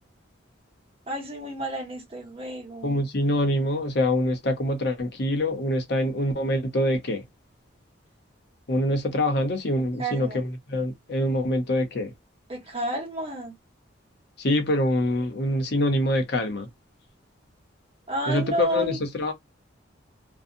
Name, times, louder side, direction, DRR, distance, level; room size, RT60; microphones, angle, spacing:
voice 1, 1.1-3.0 10.0-10.4 12.5-13.5 18.1-19.0, right 2 dB, 30° right, 1.1 m, -31 dB
voice 2, 2.8-7.3 8.7-12.1 14.4-16.7 18.3-19.3, left 1 dB, 55° left, 0.7 m, -25 dB
2.6 x 2.0 x 2.6 m
head